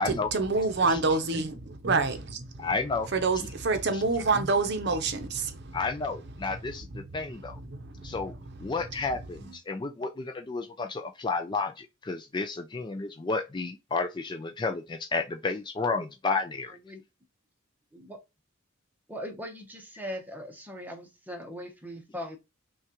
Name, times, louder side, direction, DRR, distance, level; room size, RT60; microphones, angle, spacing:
voice 1, 0.0-2.7 3.1-5.8 7.7-8.1, right 3 dB, 50° right, 0.7 m, -27 dB
voice 2, 2.6-3.1 3.4-3.5 3.9-4.0 5.7-7.6 8.0-8.3 8.6-16.8, left 3 dB, 20° left, 0.3 m, -31 dB
voice 3, 19.1-22.4, equal, 10° right, 0.8 m, -40 dB
5.9 x 2.3 x 2.9 m
head